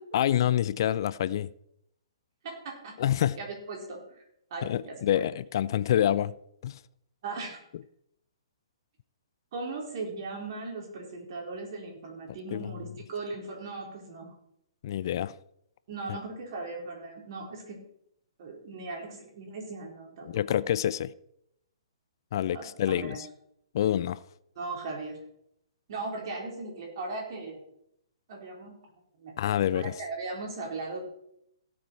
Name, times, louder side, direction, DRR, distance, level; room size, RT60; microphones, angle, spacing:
voice 1, 0.1-1.5 3.0-3.4 4.6-6.3 6.6-6.8 12.5-12.7 14.8-15.3 16.1-16.2 20.2-21.1 22.3-23.3 23.7-24.2 29.4-29.9, left 11 dB, 50° left, 0.4 m, -27 dB
voice 2, 2.4-3.0 3.4-4.2 4.5-5.2 7.2-7.6 9.5-14.3 15.9-17.8 18.4-20.6 22.5-23.2 24.6-25.2 25.9-27.6 28.3-28.8 29.1-29.3 29.7-31.0, right 3 dB, 50° right, 4.2 m, -38 dB
16.5 x 7.1 x 4.7 m
figure-of-eight pair, 125°, 3 cm